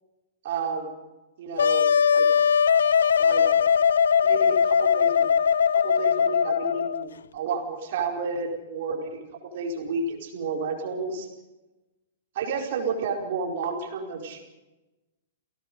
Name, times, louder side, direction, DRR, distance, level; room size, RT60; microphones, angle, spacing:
voice 1, 0.4-0.9 1.4-2.3 3.2-3.5 4.2-5.3 5.7-9.2 9.5-11.3 12.3-14.4, right 4 dB, 55° right, 1 dB, 4.7 m, -31 dB
Wind instrument woodwind instrument, 1.6-7.1, left 7 dB, 70° left, 0.7 m, -20 dB
29.5 x 17.5 x 5.4 m, 1.1 s
figure-of-eight pair, 105°, 0 cm